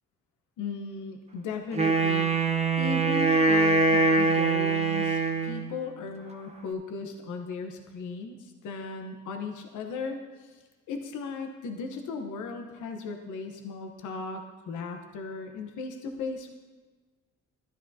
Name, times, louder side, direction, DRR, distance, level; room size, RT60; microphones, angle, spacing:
voice 1, 0.6-10.6 10.9-16.5, left 4 dB, 85° left, 4 dB, 1.0 m, -37 dB
Wind instrument woodwind instrument, 1.7-5.7, right 3 dB, 20° right, 0.9 m, -23 dB
12.5 x 11.0 x 2.8 m, 1.3 s
cardioid pair, 90°, 30 cm